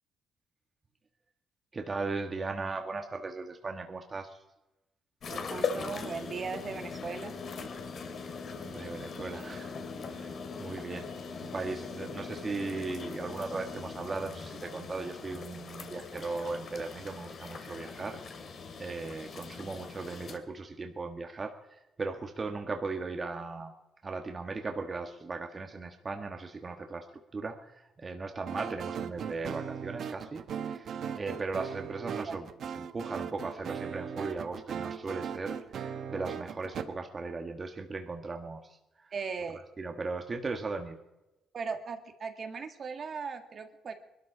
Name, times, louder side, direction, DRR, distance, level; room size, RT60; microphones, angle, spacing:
voice 1, 1.7-4.4 8.6-9.7 10.0-11.1 11.4-18.2 18.5-23.7 24.0-27.1 27.3-32.5 32.7-38.6 39.0-39.1 39.8-41.0, right 3 dB, 30° right, 4 dB, 1.5 m, -37 dB
sound 1, 5.2-20.4, left 5 dB, 55° left, 2.2 m, -40 dB
voice 2, 5.3-7.3 32.2-32.4 39.1-39.6 41.5-43.9, right 5 dB, 50° right, 6 dB, 1.8 m, -38 dB
sound 2, 28.5-36.8, right 7 dB, 65° right, 1.2 m, -38 dB
21.0 x 12.5 x 5.0 m, 0.97 s
cardioid pair, 90°, 0 cm